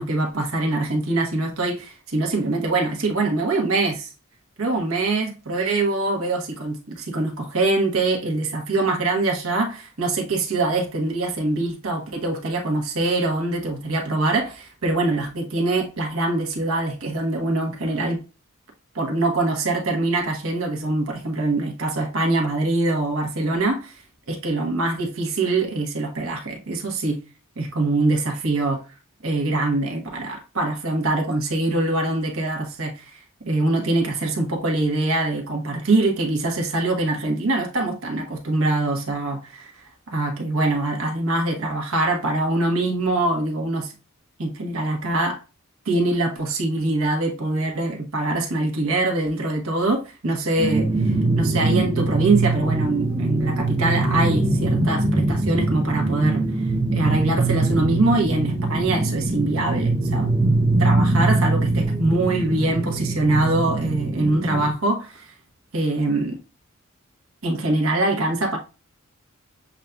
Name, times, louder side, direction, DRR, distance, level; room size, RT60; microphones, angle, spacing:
voice 1, 0.0-4.1 4.6-18.2 18.9-24.0 24.3-27.2 27.6-28.8 29.2-43.9 44.4-45.4 45.8-56.4 56.9-60.3 60.8-65.3 65.7-66.4 67.4-68.6, right 2 dB, 80° right, 1.1 m, -23 dB
sound 1, 50.6-64.7, right 2 dB, 20° right, 0.5 m, -22 dB
7.2 x 2.6 x 2.3 m
head